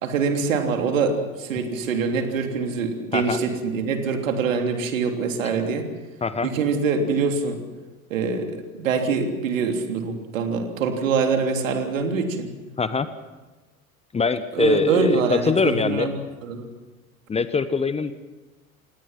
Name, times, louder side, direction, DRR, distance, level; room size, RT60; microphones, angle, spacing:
voice 1, 0.0-5.9 6.4-7.6 8.1-12.5 14.5-16.7, right 5 dB, 65° right, 4 dB, 3.4 m, -24 dB
voice 2, 14.1-16.1 17.3-18.1, left 5 dB, 15° left, 12 dB, 1.1 m, -23 dB
28.0 x 19.0 x 6.0 m, 1.2 s
figure-of-eight pair, 80°, 42 cm